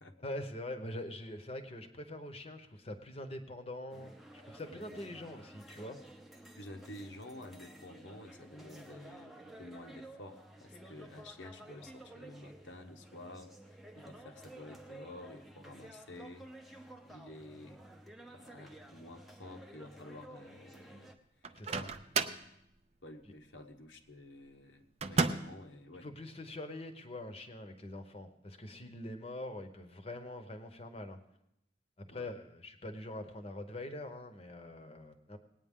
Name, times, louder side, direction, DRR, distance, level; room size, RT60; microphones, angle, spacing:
voice 1, 0.2-6.0 21.5-21.9 26.0-31.2 32.0-35.4, left 1 dB, 30° left, 7 dB, 0.9 m, -44 dB
sound 1, 3.9-21.1, right 1 dB, ahead, 0.7 m, -53 dB
voice 2, 4.6-5.1 6.6-17.8 18.3-21.1 21.4-21.6 22.1-22.4 23.0-26.1 32.1-32.3, left 1 dB, 75° left, 5 dB, 1.1 m, -51 dB
Microwave oven, 21.4-22.5 25.0-25.6, right 4 dB, 35° right, 0.5 m, -32 dB
20.0 x 9.2 x 3.7 m, 0.80 s
head